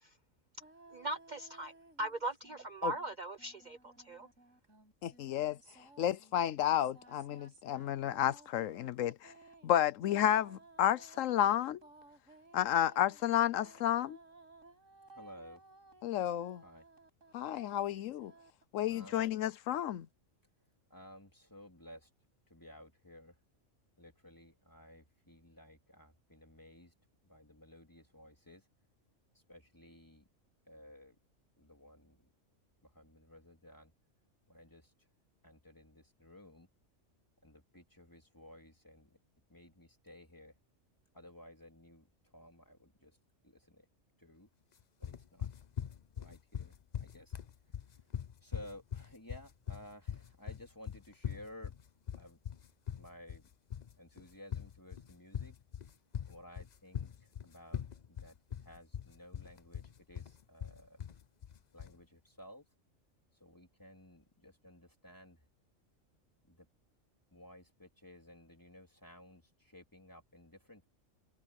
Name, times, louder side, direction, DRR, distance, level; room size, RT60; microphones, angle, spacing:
sound 1, 0.6-2.7 2.9-18.6, right 3 dB, 80° right, 7.7 m, -59 dB
voice 1, 0.9-1.7 2.0-4.3, right 2 dB, 40° right, 0.8 m, -39 dB
voice 2, 5.0-5.6 6.0-9.3 9.6-11.8 12.5-14.2 16.0-16.6 17.3-18.3 18.7-20.1, left 11 dB, 80° left, 1.0 m, -31 dB
voice 3, 15.2-15.6 16.6-16.8 18.9-19.2 20.9-22.0 22.5-23.3 24.0-26.9 27.3-28.6 29.5-30.2 30.7-31.1 31.6-32.2 33.0-33.9 34.5-34.8 35.4-36.7 37.4-39.1 39.5-40.5 41.1-42.0 42.3-43.1 43.7-43.8 44.2-44.5 45.0-45.5 46.2-46.7 47.0-47.3 48.4-51.7 52.2-52.4 53.0-53.4 54.0-55.5 56.3-57.1 57.4-57.8 58.2-58.3 58.6-59.8 60.1-61.0 61.7-62.6 63.4-65.4 66.5-66.6 67.3-69.4 69.7-70.9, left 1 dB, 15° left, 3.9 m, -55 dB
sound 2, 45.0-62.0, left 8 dB, 45° left, 0.6 m, -42 dB
omnidirectional pair, 1.3 m